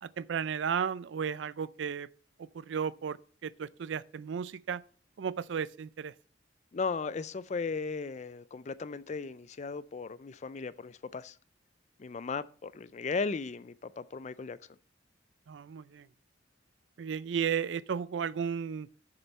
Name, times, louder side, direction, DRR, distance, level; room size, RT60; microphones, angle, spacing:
voice 1, 0.0-2.1 2.4-4.8 5.2-6.1 15.5-16.1 17.0-18.9, right 7 dB, 75° right, 0.4 m, -34 dB
voice 2, 6.7-11.4 12.0-14.6, left 4 dB, 40° left, 0.4 m, -36 dB
7.2 x 6.8 x 5.3 m
head